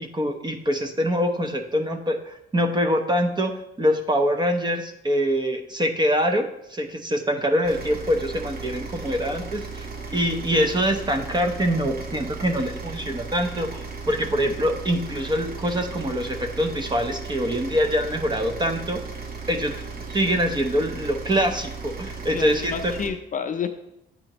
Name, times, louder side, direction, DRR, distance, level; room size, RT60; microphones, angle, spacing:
voice 1, 0.0-9.9 10.1-19.0 19.5-19.8 20.1-22.9, equal, 20° right, 5 dB, 0.8 m, -24 dB
sound 1, 7.6-23.1, right 4 dB, 50° right, 1.0 m, -36 dB
voice 2, 22.3-23.7, left 6 dB, 40° left, 7 dB, 0.6 m, -29 dB
9.0 x 4.2 x 2.9 m, 0.80 s
cardioid pair, 90°, 20 cm